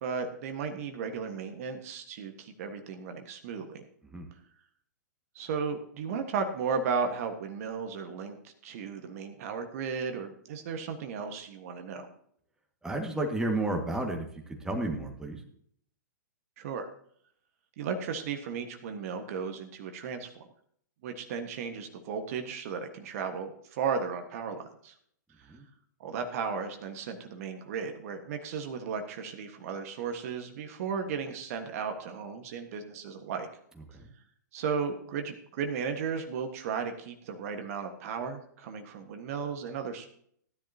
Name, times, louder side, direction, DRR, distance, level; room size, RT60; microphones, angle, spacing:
voice 1, 0.0-3.8 5.3-12.1 16.6-16.9 17.8-20.4 21.0-24.9 25.4-25.5 26.0-33.5 34.5-40.1, right 6 dB, 50° right, 6 dB, 1.5 m, -35 dB
voice 2, 12.8-15.4 25.5-25.6 33.9-34.1, right 2 dB, 5° right, 2 dB, 1.8 m, -32 dB
15.0 x 10.5 x 2.8 m, 0.64 s
hypercardioid pair, 115°, 10 cm